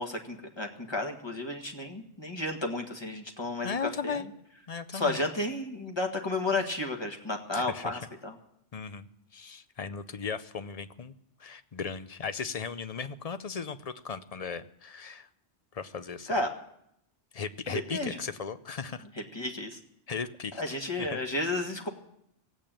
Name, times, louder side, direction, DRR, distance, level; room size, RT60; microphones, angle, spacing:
voice 1, 0.0-4.2 4.9-8.3 16.3-16.5 17.7-18.2 19.3-19.8 20.6-21.9, left 2 dB, 25° left, 3 dB, 1.7 m, -32 dB
voice 2, 3.6-4.3 4.7-5.2 7.5-8.0 8.7-11.1 11.4-15.3 15.7-16.3 17.3-19.0 20.1-21.2, left 5 dB, 40° left, 12 dB, 0.6 m, -37 dB
17.0 x 8.7 x 8.9 m, 0.77 s
omnidirectional pair, 1.2 m